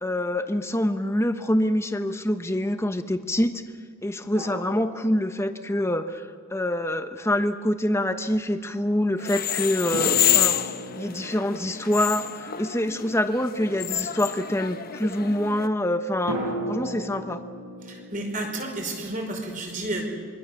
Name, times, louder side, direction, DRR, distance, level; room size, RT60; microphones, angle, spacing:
voice 1, 0.0-3.5 4.0-10.6 11.0-16.4 16.7-17.4, left 1 dB, 10° left, 8 dB, 1.1 m, -25 dB
sound 1, 4.3-5.9 9.9-13.6 16.3-19.0, right 1 dB, 90° right, 7.4 m, -36 dB
sound 2, 9.2-15.7, left 11 dB, 45° left, 1.0 m, -28 dB
voice 2, 17.8-20.0, right 2 dB, 40° right, 2 dB, 5.2 m, -31 dB
26.5 x 23.5 x 7.1 m, 2.2 s
head